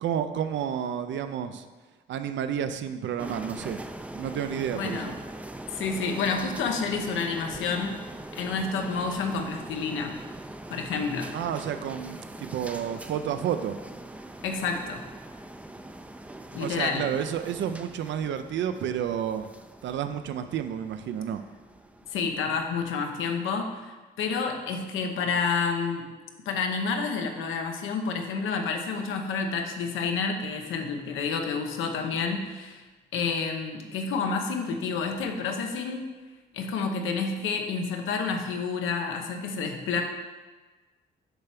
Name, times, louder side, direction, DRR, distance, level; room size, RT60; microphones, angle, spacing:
voice 1, 0.0-1.7 2.1-3.8 4.1-5.2 11.3-13.8 16.6-19.5 19.8-21.4, right 9 dB, 70° right, 10 dB, 0.5 m, -30 dB
sound 1, 3.2-22.9, right 1 dB, 5° right, 0.4 m, -42 dB
voice 2, 4.8-5.1 5.7-8.0 8.3-10.1 10.7-11.4 14.4-15.0 16.5-17.1 22.1-26.1 26.5-32.8 33.1-36.1 36.5-40.0, left 5 dB, 85° left, 4 dB, 0.8 m, -29 dB
6.8 x 3.4 x 5.9 m, 1.3 s
cardioid pair, 90°, 20 cm